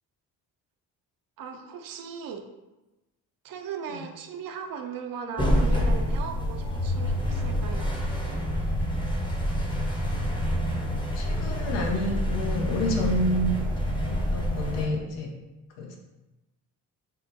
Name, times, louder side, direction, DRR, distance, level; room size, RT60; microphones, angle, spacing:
voice 1, 1.4-2.4 3.4-7.9, right 6 dB, 55° right, 5 dB, 0.5 m, -38 dB
sound 1, 5.4-14.9, equal, 10° left, 0.7 m, -27 dB
voice 2, 10.5-13.7 13.9-15.3 15.8-16.0, equal, 80° left, 1 dB, 0.7 m, -29 dB
3.7 x 2.1 x 2.6 m, 1.0 s
hypercardioid pair, 50°, 42 cm